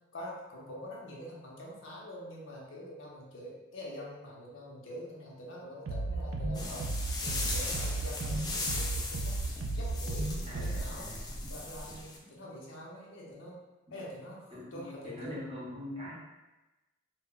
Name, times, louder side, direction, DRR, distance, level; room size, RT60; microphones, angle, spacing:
voice 1, 0.1-6.9 7.2-9.3 9.7-11.1 11.5-13.6 13.9-15.4, left 1 dB, 65° left, -3 dB, 0.6 m, -45 dB
sound 1, 5.9-10.8, right 2 dB, 85° right, 0.4 m, -34 dB
sound 2, 6.5-12.2, left 2 dB, 20° left, 0.3 m, -38 dB
voice 2, 10.5-11.5 14.5-16.1, left 1 dB, 30° right, -6 dB, 0.7 m, -43 dB
2.2 x 2.1 x 3.7 m, 1.1 s
head